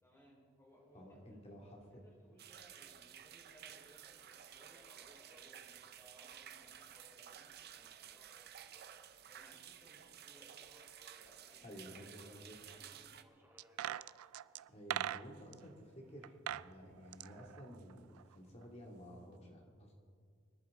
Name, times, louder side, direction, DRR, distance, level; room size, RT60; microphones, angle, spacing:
voice 1, 0.0-8.4 9.2-10.5 11.1-11.9 12.2-13.1, equal, 15° left, -4 dB, 4.7 m, -65 dB
Subway metro underground, 0.7-19.1, equal, 10° right, 1.6 m, -70 dB
voice 2, 0.9-1.8 11.6-12.6 14.7-19.9, equal, 30° left, -1 dB, 2.6 m, -53 dB
sound 1, 2.4-13.2, right 10 dB, 50° right, 0.6 m, -54 dB
sound 2, 13.6-15.6 16.2-16.7 17.0-18.3 18.6-18.7, right 12 dB, 90° right, 0.3 m, -41 dB
26.0 x 11.0 x 3.8 m, 2.1 s
head